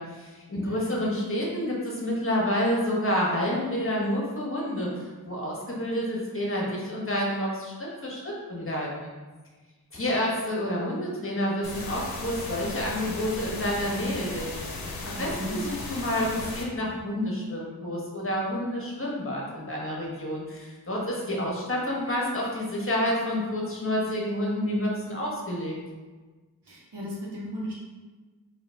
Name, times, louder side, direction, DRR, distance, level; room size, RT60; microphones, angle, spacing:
voice 1, 0.0-9.1 9.9-14.5 15.0-25.7, equal, 35° left, -3 dB, 1.3 m, -29 dB
voice 2, 0.6-1.0 15.1-15.6 26.6-27.7, equal, 85° right, -6 dB, 1.4 m, -36 dB
sound 1, 11.6-16.6, left 3 dB, 65° left, 0.8 m, -36 dB
3.8 x 3.0 x 3.4 m, 1.3 s
cardioid pair, 55°, 39 cm